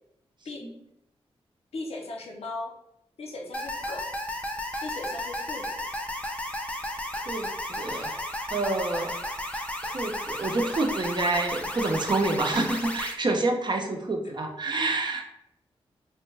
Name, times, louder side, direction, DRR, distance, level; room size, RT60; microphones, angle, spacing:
voice 1, 1.7-2.7 3.2-4.1 4.8-5.9, left 2 dB, 75° left, 0 dB, 0.6 m, -37 dB
sound 1, 3.5-13.1, left 1 dB, 10° left, 0.5 m, -33 dB
voice 2, 7.3-8.2 8.5-9.3 9.8-15.2, right 2 dB, 45° right, 3 dB, 0.6 m, -28 dB
3.3 x 2.2 x 3.3 m, 0.80 s
cardioid pair, 50°, 11 cm